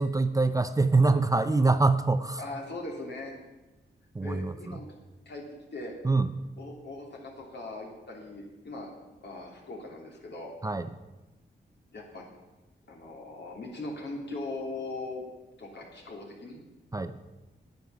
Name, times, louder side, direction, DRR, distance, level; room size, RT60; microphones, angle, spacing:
voice 1, 0.0-2.4 4.1-4.8 6.0-6.3 10.6-10.9 16.9-17.1, right 3 dB, 20° right, 10 dB, 0.6 m, -24 dB
voice 2, 2.4-3.3 4.2-4.9 5.2-5.4 5.7-5.9 6.6-8.9 9.2-10.5 11.9-12.2 12.9-15.3 15.6-16.6, left 2 dB, 65° left, 0 dB, 3.0 m, -39 dB
9.5 x 9.3 x 7.0 m, 1.1 s
cardioid pair, 90°, 19 cm